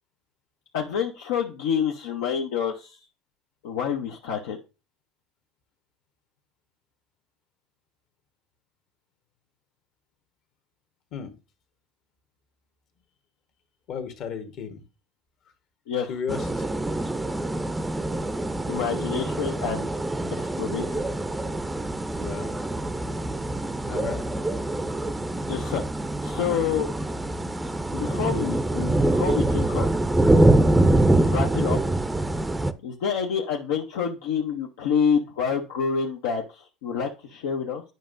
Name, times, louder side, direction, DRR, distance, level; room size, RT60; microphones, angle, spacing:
voice 1, 0.7-3.0 3.6-4.6 15.9-16.1 18.7-19.9 20.4-21.1 25.5-25.8 26.2-26.9 27.9-29.9 31.2-31.8 32.8-37.8, left 7 dB, 75° left, 1 dB, 0.7 m, -27 dB
voice 2, 13.9-14.8 16.1-16.7 22.2-22.6 23.9-24.2, left 6 dB, 55° left, 6 dB, 1.2 m, -34 dB
sound 1, 16.3-32.7, right 1 dB, 10° right, 0.5 m, -24 dB
9.2 x 5.2 x 2.5 m, 0.31 s
hypercardioid pair, 85°, 0 cm